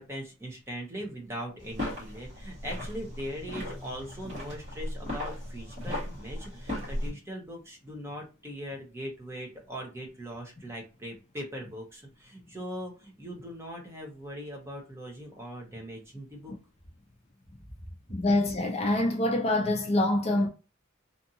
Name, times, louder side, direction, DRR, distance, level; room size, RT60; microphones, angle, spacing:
voice 1, 0.0-16.5 17.8-17.9, equal, 15° right, 0.8 m, -40 dB
sound 1, 1.6-7.1, left 1 dB, 40° right, 1.4 m, -37 dB
voice 2, 18.1-20.5, left 1 dB, 30° left, 0.4 m, -25 dB
2.6 x 2.5 x 2.7 m
head